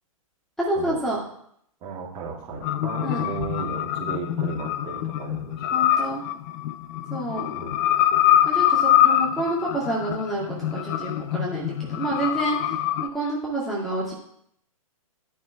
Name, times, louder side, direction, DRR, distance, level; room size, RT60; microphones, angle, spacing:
voice 1, 0.6-1.2 3.0-3.3 5.7-6.2 7.1-7.5 8.5-12.6 13.0-14.1, right 1 dB, ahead, -6 dB, 2.0 m, -28 dB
voice 2, 1.8-5.8 7.5-7.8, right 4 dB, 30° right, -4 dB, 3.0 m, -35 dB
sound 1, 2.6-13.1, left 11 dB, 30° left, 0.6 m, -24 dB
12.0 x 6.1 x 4.6 m, 0.70 s
figure-of-eight pair, 115°, 19 cm